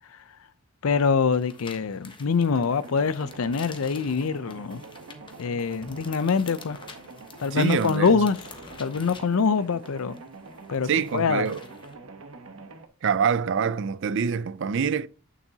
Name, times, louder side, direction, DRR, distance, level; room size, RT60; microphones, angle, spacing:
voice 1, 0.8-4.8 5.4-6.8 7.4-8.4 8.8-10.2 10.7-11.5, left 5 dB, 75° left, 0.5 m, -24 dB
sound 1, 1.0-11.9, left 4 dB, 25° left, 1.1 m, -48 dB
sound 2, 2.5-12.9, right 3 dB, 75° right, 1.1 m, -45 dB
voice 2, 7.5-8.2 10.8-11.6 13.0-15.1, right 6 dB, 55° right, 0.4 m, -25 dB
8.8 x 6.9 x 2.8 m
head